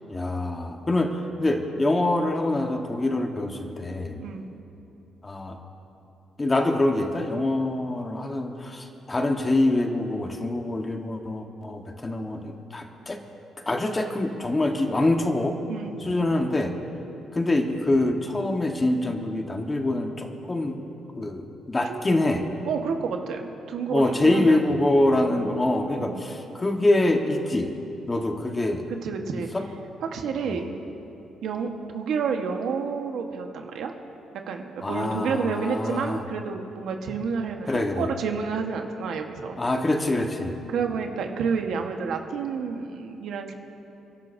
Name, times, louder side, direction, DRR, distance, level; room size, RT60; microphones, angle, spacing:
voice 1, 0.1-4.2 5.2-5.6 6.4-13.2 13.6-15.6 16.0-16.7 17.3-20.8 21.2-22.5 23.9-27.7 28.1-28.8 29.3-29.6 30.4-30.6 34.8-36.2 37.7-38.1 39.6-40.6, left 2 dB, 25° left, 4 dB, 1.2 m, -25 dB
voice 2, 22.6-24.6 25.3-25.6 26.0-26.2 29.0-29.5 30.0-30.7 31.4-33.9 34.5-39.6 40.7-43.5, right 5 dB, 75° right, 4 dB, 1.2 m, -30 dB
29.5 x 11.5 x 2.7 m, 2.9 s
cardioid pair, 90°, 0 cm